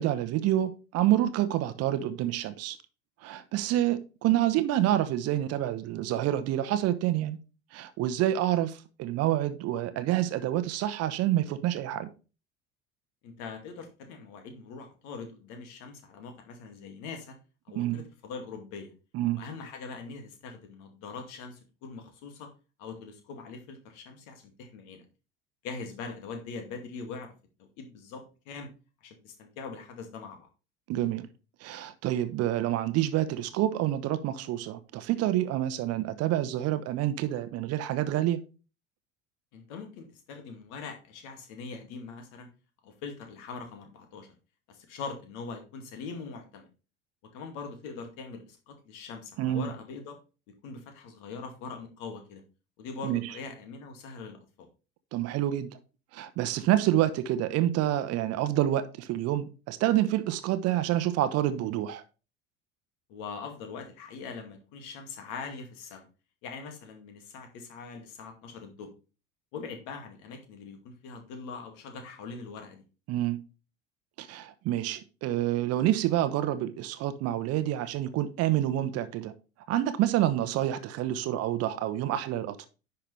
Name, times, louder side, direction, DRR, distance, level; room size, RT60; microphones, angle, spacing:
voice 1, 0.0-2.8 3.2-7.4 7.7-12.1 17.7-18.1 19.1-19.4 30.9-31.3 31.6-38.4 49.4-49.7 53.0-53.3 55.1-55.8 56.1-62.0 73.1-73.4 74.2-79.3 79.7-82.7, right 13 dB, 40° right, 1.0 m, -28 dB
voice 2, 13.2-17.4 17.7-18.9 19.3-22.5 22.8-25.0 25.6-27.3 27.8-28.7 29.0-30.5 39.5-42.5 42.8-44.3 44.7-46.7 47.2-50.2 50.6-52.4 52.8-54.7 63.1-66.1 66.4-68.9 69.5-72.8, left 4 dB, 50° left, 2.3 m, -42 dB
10.0 x 5.9 x 3.3 m
figure-of-eight pair, 65°, 37 cm